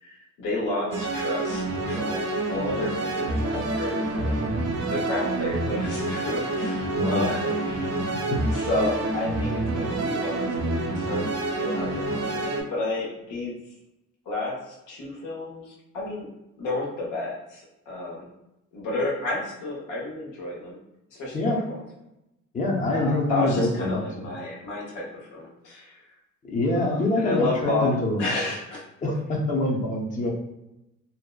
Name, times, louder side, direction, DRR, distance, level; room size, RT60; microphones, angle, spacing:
voice 1, 0.0-4.4 4.8-8.1 8.5-11.3 11.6-13.5 14.3-16.3 16.6-18.3 18.7-20.8 21.1-21.8 22.9-26.0 26.8-28.8, left 2 dB, 85° left, -4 dB, 0.9 m, -31 dB
sound 1, 0.9-12.6, right 2 dB, 55° right, 0.5 m, -27 dB
voice 2, 7.0-7.4 8.1-8.4 21.3-21.6 22.5-24.3 26.4-28.2 29.0-30.3, left 2 dB, 25° left, 0 dB, 0.5 m, -25 dB
2.6 x 2.1 x 2.2 m, 0.91 s
cardioid pair, 90°, 30 cm